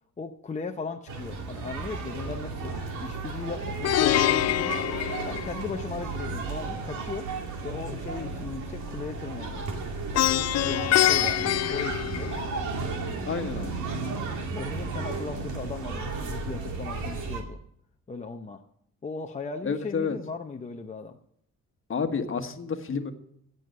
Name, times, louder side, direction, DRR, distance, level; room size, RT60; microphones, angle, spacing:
voice 1, 0.2-4.8 5.2-7.3 7.6-9.7 10.3-12.4 14.5-17.6 18.1-18.6 19.0-21.2, left 4 dB, 25° left, 4 dB, 0.8 m, -37 dB
sound 1, 1.1-17.4, right 3 dB, 75° right, 2.4 m, -34 dB
Plucked string instrument, 3.8-6.0 10.1-12.8, left 13 dB, 60° left, 0.5 m, -25 dB
voice 2, 13.2-13.8 19.6-20.2 21.9-23.1, left 5 dB, 45° left, 7 dB, 1.5 m, -30 dB
15.0 x 8.0 x 6.6 m, 0.71 s
cardioid pair, 90°, 30 cm